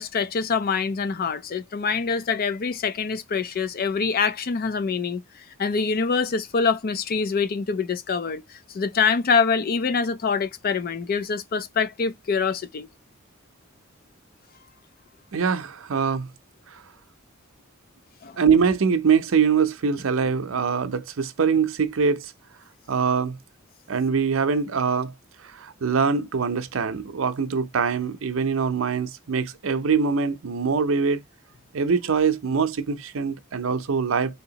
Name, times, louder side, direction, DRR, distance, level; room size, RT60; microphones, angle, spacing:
voice 1, 0.0-5.2 5.6-8.4 8.7-12.9 18.2-18.4, left 5 dB, 45° left, 0.5 m, -25 dB
voice 2, 15.3-16.3 16.7-16.8 18.4-22.3 22.9-23.4 23.9-25.1 25.4-31.2 31.7-34.4, right 5 dB, 75° right, 0.6 m, -23 dB
3.5 x 2.8 x 2.8 m
head